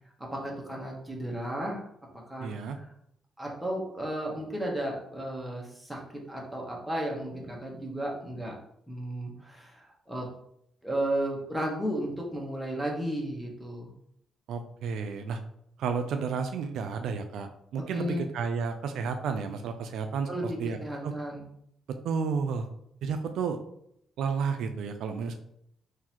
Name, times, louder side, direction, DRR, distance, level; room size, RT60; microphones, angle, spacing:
voice 1, 0.2-1.8 2.3-2.9 3.4-8.5 8.9-10.3 10.8-13.9 17.9-18.2 20.3-21.5, right 1 dB, 5° right, -2 dB, 1.1 m, -34 dB
voice 2, 2.4-2.8 14.5-15.4 15.8-20.8 21.0-21.1 21.9-22.7 23.0-23.6 24.2-25.4, right 5 dB, 75° right, 7 dB, 0.3 m, -31 dB
3.8 x 2.6 x 3.0 m, 0.73 s
cardioid pair, 90°, 0 cm